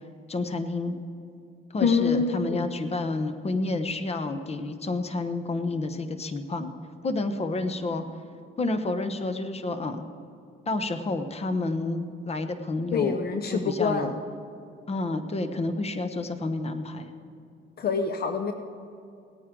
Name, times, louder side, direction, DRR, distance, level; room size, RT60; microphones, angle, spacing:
voice 1, 0.3-1.0 1.7-6.7 7.0-8.0 8.6-10.1 10.7-14.1 14.9-17.1, left 2 dB, 30° left, 9 dB, 1.0 m, -30 dB
voice 2, 1.8-2.7 12.9-14.1 17.8-18.5, left 5 dB, 50° left, 6 dB, 0.8 m, -25 dB
18.0 x 9.4 x 3.8 m, 2.6 s
cardioid pair, 90°, 20 cm